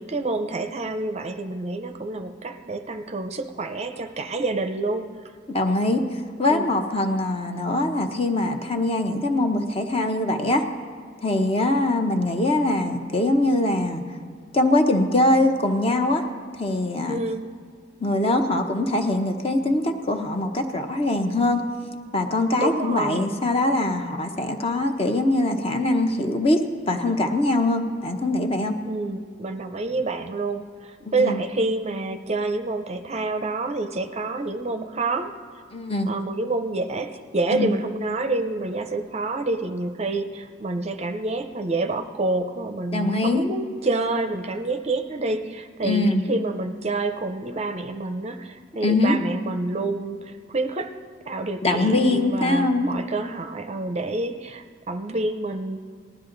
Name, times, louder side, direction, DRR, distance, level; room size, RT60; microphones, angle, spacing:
voice 1, 0.0-5.1 6.5-6.7 17.1-17.5 22.6-23.4 28.8-35.4 36.1-51.0 51.2-55.8, right 2 dB, 35° right, 7 dB, 0.6 m, -28 dB
voice 2, 5.5-6.0 6.4-10.6 11.2-14.0 14.5-16.2 16.6-17.2 18.0-21.6 22.1-28.8 31.0-31.4 35.7-36.1 37.5-37.8 42.9-43.5 45.8-46.2 48.8-49.2 51.6-52.9, left 2 dB, 30° left, 5 dB, 0.9 m, -22 dB
19.0 x 12.0 x 3.9 m, 2.1 s
head